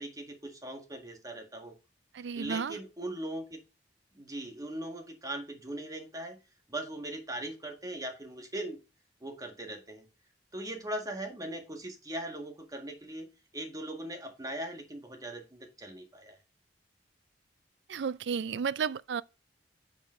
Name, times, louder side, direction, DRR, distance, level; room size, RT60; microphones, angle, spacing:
voice 1, 0.0-1.7 2.4-3.6 4.1-6.4 6.7-8.8 9.2-10.1 10.5-13.3 13.5-16.4, right 1 dB, 20° right, 1.7 m, -40 dB
voice 2, 2.1-2.8 17.9-19.2, right 6 dB, 70° right, 0.4 m, -32 dB
8.2 x 5.1 x 3.1 m
head